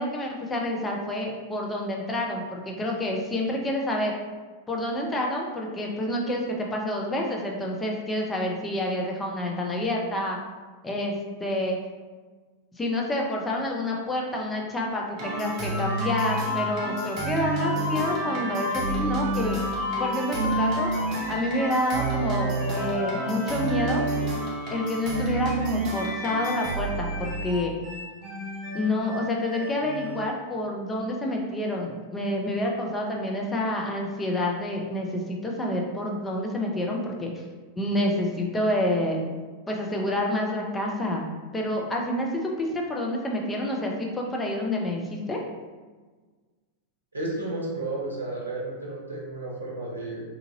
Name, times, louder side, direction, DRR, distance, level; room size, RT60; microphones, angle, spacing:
voice 1, 0.0-4.1 4.7-10.4 10.8-11.1 11.4-11.8 12.8-19.6 20.0-20.9 21.3-24.0 24.7-27.7 28.7-37.3 37.8-39.2 39.7-41.3 41.5-45.4, left 1 dB, 15° left, -1 dB, 0.5 m, -28 dB
sound 1, 15.2-30.3, right 1 dB, 35° right, 0.8 m, -29 dB
voice 2, 47.1-50.2, right 2 dB, 80° right, -3 dB, 0.7 m, -32 dB
2.7 x 2.5 x 2.7 m, 1.4 s
figure-of-eight pair, 90°, 0 cm